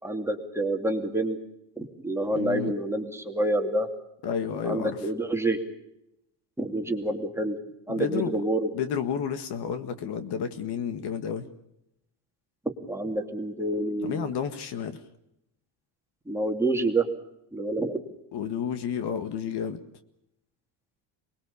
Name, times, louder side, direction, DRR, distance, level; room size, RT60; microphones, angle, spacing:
voice 1, 0.0-1.4 1.8-3.9 4.6-5.6 6.6-7.6 7.9-8.7 12.9-14.3 16.3-17.0 17.5-18.0, right 2 dB, 5° right, 3 dB, 2.6 m, -28 dB
voice 2, 2.3-2.7 4.2-5.1 7.9-8.4 8.7-11.5 14.0-15.0 18.3-19.8, left 7 dB, 55° left, 10 dB, 1.8 m, -31 dB
24.0 x 21.0 x 7.0 m, 0.84 s
cardioid pair, 120°, 47 cm